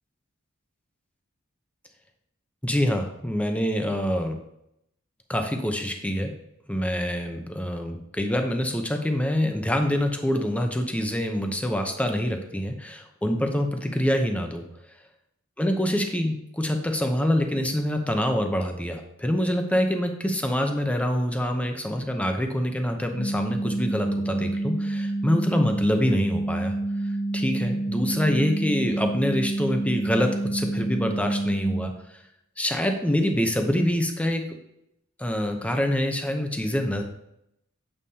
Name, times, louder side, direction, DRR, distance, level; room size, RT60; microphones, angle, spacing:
voice 1, 2.6-4.3 5.3-6.3 6.7-14.6 15.6-26.7 27.3-31.9 32.6-34.4 35.2-37.0, equal, 5° left, 4 dB, 0.7 m, -25 dB
sound 1, 23.2-31.8, right 2 dB, 55° left, 0.9 m, -28 dB
8.0 x 5.5 x 2.8 m, 0.79 s
head